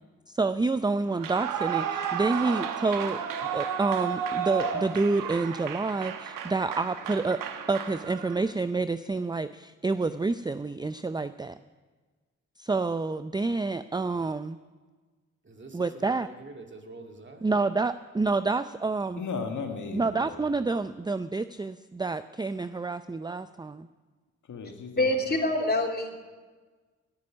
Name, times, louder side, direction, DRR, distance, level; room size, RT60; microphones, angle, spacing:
voice 1, 0.3-3.2 3.5-7.4 7.7-11.6 12.6-14.6 15.7-16.3 17.4-19.2 19.9-23.9, right 3 dB, 15° right, 12 dB, 0.5 m, -28 dB
Clapping / Cheering / Applause, 1.1-8.5, right 8 dB, 80° right, 1.1 m, -33 dB
voice 2, 15.4-17.5, right 2 dB, 35° right, 3 dB, 2.5 m, -46 dB
voice 3, 19.2-20.4 24.5-25.4, left 5 dB, 65° left, 4 dB, 1.9 m, -36 dB
voice 4, 25.0-26.1, left 1 dB, 30° left, 1 dB, 3.2 m, -25 dB
18.5 x 9.6 x 6.3 m, 1.4 s
supercardioid pair, 45°, 32 cm